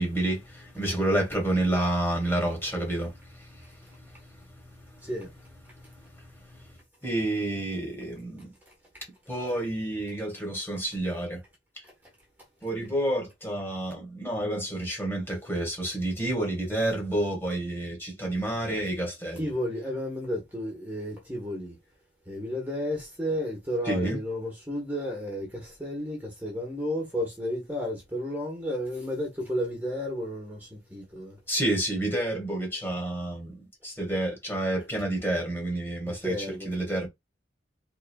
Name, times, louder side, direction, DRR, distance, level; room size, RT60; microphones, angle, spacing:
voice 1, 0.0-3.1 3.4-3.5 7.0-8.5 9.3-11.4 12.6-19.5 23.9-24.2 31.5-36.3 36.6-37.1, right 1 dB, 15° left, 2.0 m, -29 dB
voice 2, 8.7-9.0 18.7-18.8 19.4-21.8 22.3-31.4 36.0-36.8, equal, 10° right, 1.4 m, -32 dB
4.0 x 3.9 x 2.4 m
head